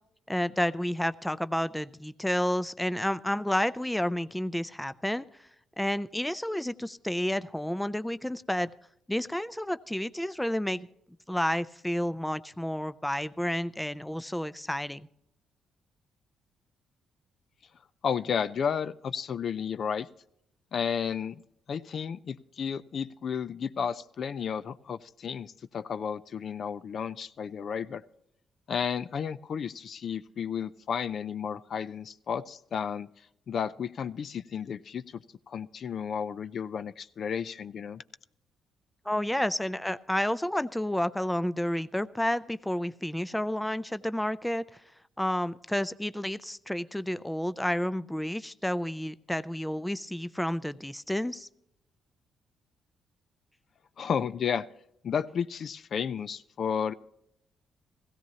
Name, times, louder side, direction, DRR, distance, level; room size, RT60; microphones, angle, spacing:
voice 1, 0.3-5.3 5.8-8.7 9.1-10.9 11.3-15.1 39.1-44.6 45.2-51.5, left 1 dB, 5° left, 14 dB, 0.4 m, -30 dB
voice 2, 18.0-20.1 20.7-21.4 21.7-28.0 28.7-33.1 33.5-35.2 35.5-38.0 54.0-54.7 55.0-56.9, left 7 dB, 55° left, 14 dB, 0.5 m, -32 dB
16.5 x 16.0 x 2.8 m, 0.76 s
cardioid pair, 90°, 0 cm